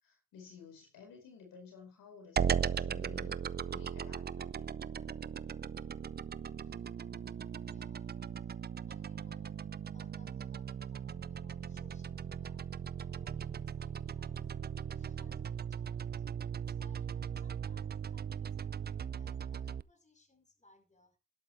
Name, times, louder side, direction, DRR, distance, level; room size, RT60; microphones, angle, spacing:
voice 1, 0.0-3.4 3.6-4.7, left 5 dB, 85° left, 5.0 m, -54 dB
sound 1, 2.4-19.8, right 7 dB, 30° right, 0.5 m, -38 dB
voice 2, 7.6-8.5 8.9-9.6 9.9-12.6 12.9-14.5 14.8-21.2, left 2 dB, 20° left, 4.8 m, -66 dB
12.5 x 11.5 x 3.4 m
cardioid pair, 75°, 32 cm